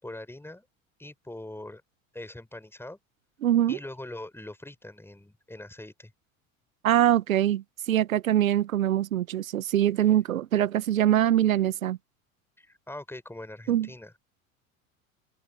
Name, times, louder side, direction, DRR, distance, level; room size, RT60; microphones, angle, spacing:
voice 1, 0.0-0.7 1.0-1.8 2.1-3.0 3.7-6.1 12.6-14.1, left 1 dB, 5° left, 7.1 m, -42 dB
voice 2, 3.4-3.8 6.8-12.0 13.7-13.9, right 11 dB, 80° right, 1.2 m, -23 dB
open air
figure-of-eight pair, 75°, 41 cm